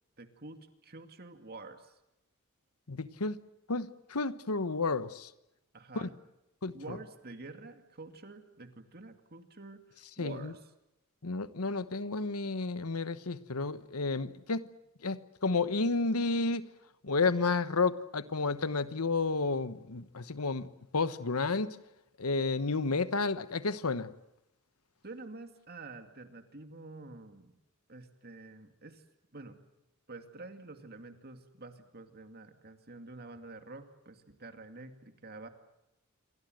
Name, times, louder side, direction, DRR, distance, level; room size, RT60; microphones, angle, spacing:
voice 1, 0.2-2.0 5.7-6.1 6.7-10.7 25.0-27.6 27.9-29.0 29.3-29.6 30.1-35.5, right 2 dB, 45° right, 7 dB, 2.4 m, -48 dB
voice 2, 2.9-3.4 3.7-5.3 5.9-6.1 6.6-6.7 10.2-10.5 11.2-14.7 15.0-16.7 17.0-20.7 20.9-21.8 22.2-24.1, left 3 dB, 90° left, 13 dB, 1.2 m, -31 dB
28.0 x 24.0 x 7.9 m, 0.89 s
head